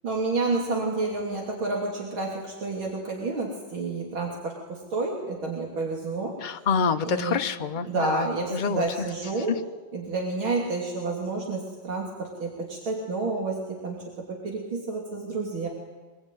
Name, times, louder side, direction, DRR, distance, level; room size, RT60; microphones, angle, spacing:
voice 1, 0.0-6.3 7.0-7.4 7.8-9.6 9.9-15.7, right 3 dB, 85° right, -1 dB, 3.8 m, -30 dB
voice 2, 6.4-9.1 9.5-9.6, left 6 dB, 40° left, 7 dB, 0.6 m, -27 dB
24.5 x 21.5 x 9.2 m, 1.3 s
omnidirectional pair, 2.2 m